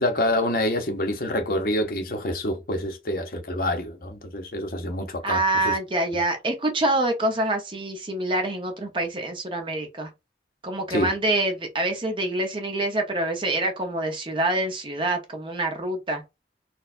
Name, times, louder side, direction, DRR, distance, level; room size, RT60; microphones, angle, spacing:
voice 1, 0.0-5.8 10.9-11.2, left 1 dB, 50° left, 0.7 m, -27 dB
voice 2, 5.2-10.1 10.6-16.2, right 2 dB, 30° right, 0.8 m, -26 dB
4.1 x 2.2 x 2.5 m
head